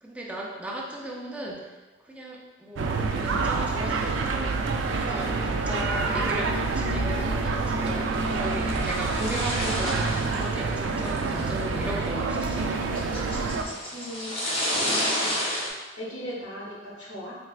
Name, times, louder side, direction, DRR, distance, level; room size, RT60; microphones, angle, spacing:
voice 1, 0.0-1.7 2.0-12.8, right 1 dB, 5° right, -3 dB, 0.5 m, -36 dB
sound 1, 2.8-13.6, right 3 dB, 85° right, 0.4 m, -27 dB
sound 2, 8.0-15.7, left 1 dB, 30° left, 0.8 m, -31 dB
voice 2, 13.9-15.3 16.0-17.3, equal, 85° left, -5 dB, 1.2 m, -38 dB
4.4 x 3.2 x 2.4 m, 1.2 s
head